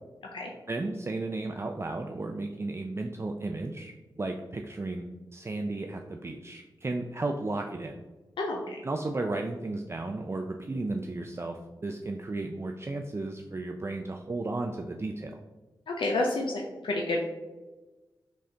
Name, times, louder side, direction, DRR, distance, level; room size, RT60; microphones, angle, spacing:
voice 1, 0.7-8.0 8.8-15.4, right 2 dB, 30° right, 3 dB, 0.4 m, -34 dB
voice 2, 8.4-8.8 15.9-17.2, left 2 dB, 85° left, 0 dB, 0.5 m, -29 dB
4.1 x 3.6 x 3.3 m, 1.2 s
cardioid pair, 40°, 8 cm